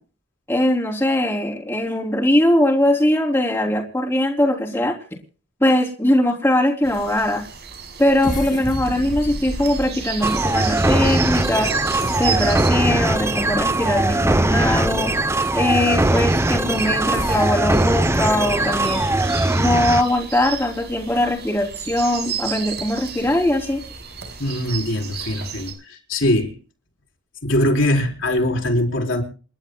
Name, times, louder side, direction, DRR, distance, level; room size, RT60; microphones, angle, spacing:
voice 1, 0.5-5.0 5.6-7.4 8.0-11.7 12.2-15.1 15.5-19.0 19.5-23.8, left 1 dB, 10° left, 3.5 m, -20 dB
sound 1, 6.8-25.7, right 7 dB, 60° right, 6.1 m, -34 dB
sound 2, 8.2-15.3 15.9-16.0 16.9-20.4 20.9-21.0 21.4-21.6, left 1 dB, 40° left, 1.9 m, -34 dB
sound 3, 10.2-20.0, right 2 dB, 15° right, 0.8 m, -20 dB
voice 2, 24.4-26.5 27.4-29.2, left 1 dB, 70° left, 4.4 m, -21 dB
29.0 x 12.0 x 2.3 m
head